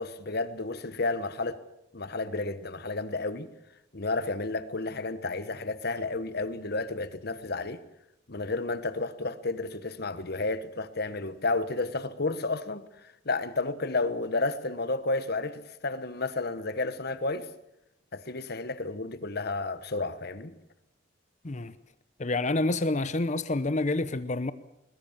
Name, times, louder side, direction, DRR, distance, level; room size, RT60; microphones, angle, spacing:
voice 1, 0.0-1.6 1.9-3.5 3.9-7.8 8.3-12.9 13.2-17.5 18.1-20.6, left 3 dB, 55° left, 1.3 m, -31 dB
voice 2, 22.2-24.5, left 2 dB, 35° left, 0.7 m, -28 dB
21.0 x 21.0 x 7.3 m
head